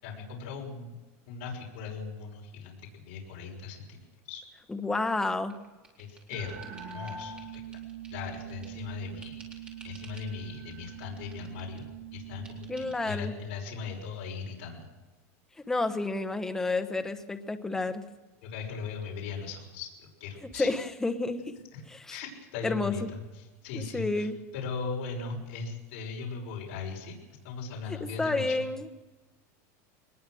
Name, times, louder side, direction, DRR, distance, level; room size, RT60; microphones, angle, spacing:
voice 1, 0.0-0.9 1.3-4.4 6.0-6.6 6.9-7.6 8.1-9.4 9.8-14.8 18.4-20.7 21.7-21.8 22.1-23.2 23.6-24.3 24.5-27.1 27.4-28.6, left 5 dB, 55° left, -1 dB, 5.9 m, -38 dB
voice 2, 4.7-5.6 12.7-13.3 15.7-18.0 20.5-21.4 21.9-22.2 22.6-23.1 23.7-24.4 27.9-28.9, left 2 dB, 5° left, 7 dB, 1.0 m, -30 dB
sound 1, 5.2-8.9 9.2-10.3 10.7-11.9 12.4-13.0, right 2 dB, 15° right, 3.9 m, -54 dB
sound 2, 6.3-13.0, right 8 dB, 35° right, 7.6 m, -43 dB
22.0 x 20.0 x 6.3 m, 1.2 s
supercardioid pair, 170°, 8 cm